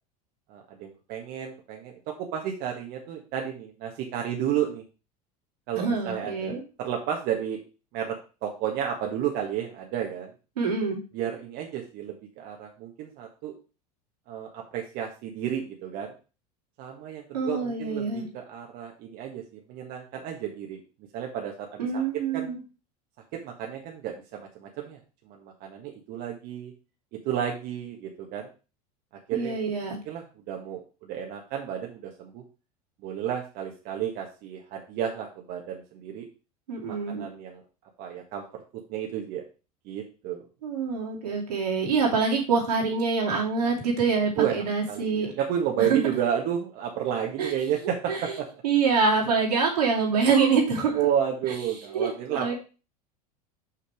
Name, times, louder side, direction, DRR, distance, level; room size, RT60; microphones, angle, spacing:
voice 1, 0.5-4.8 5.7-7.6 7.9-10.3 11.1-13.5 14.3-16.1 16.8-20.8 21.1-22.0 22.3-22.5 23.3-25.0 25.2-26.7 27.1-28.5 29.3-29.6 30.0-32.4 33.0-36.3 36.9-37.6 38.0-39.4 39.8-40.5 44.4-44.6 44.9-48.5 50.9-52.5, right 9 dB, 55° right, 1 dB, 1.5 m, -32 dB
voice 2, 5.8-6.6 10.6-11.0 17.3-18.2 21.8-22.6 29.3-30.0 36.7-37.2 40.6-45.3 45.8-46.0 47.4-47.5 48.1-48.2 48.6-51.0 51.9-52.5, right 5 dB, 85° right, 0 dB, 2.8 m, -25 dB
5.9 x 5.8 x 4.9 m, 0.33 s
hypercardioid pair, 90°, 20 cm